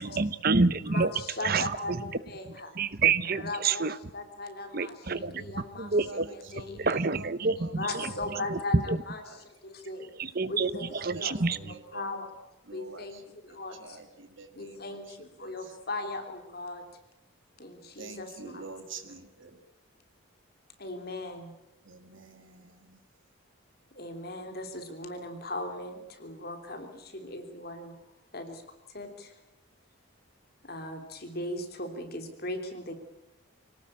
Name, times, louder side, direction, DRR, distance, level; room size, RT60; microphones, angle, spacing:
voice 1, 0.0-1.1 1.4-2.0 2.8-3.9 4.7-5.5 5.8-6.2 6.8-8.1 8.5-8.6 8.9-9.0 10.2-10.7 11.0-11.6, right 4 dB, 45° right, 15 dB, 0.9 m, -27 dB
voice 2, 0.9-2.0 2.3-2.7 3.3-7.0 7.6-10.1 10.5-11.4 11.6-12.3 12.7-14.0 14.5-16.9 17.6-18.6 20.8-21.5 23.9-28.0 28.3-28.6 28.9-29.4 30.6-32.9, left 2 dB, 45° left, 5 dB, 3.2 m, -38 dB
voice 3, 5.9-8.5 9.2-9.5 10.8-12.3 12.7-13.2 13.5-15.7 18.0-19.6 21.8-23.0, right 3 dB, 65° right, 6 dB, 1.9 m, -48 dB
26.0 x 18.0 x 8.8 m, 0.90 s
head